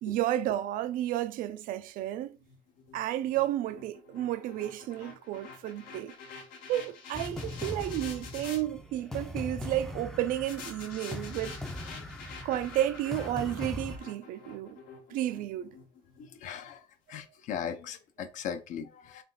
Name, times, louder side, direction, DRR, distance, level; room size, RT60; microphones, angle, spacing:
voice 1, 0.0-2.4 2.9-6.1 6.7-11.6 12.4-14.8 15.1-15.8 18.2-18.3, right 13 dB, 75° right, 0.4 m, -32 dB
sound 1, 2.4-8.6 10.5-16.7, left 5 dB, 90° left, 1.2 m, -48 dB
sound 2, 7.1-14.0, left 1 dB, 5° left, 0.4 m, -40 dB
voice 2, 16.4-16.8 17.1-19.2, left 8 dB, 60° left, 0.6 m, -38 dB
3.4 x 2.9 x 3.9 m
cardioid pair, 170°, 14 cm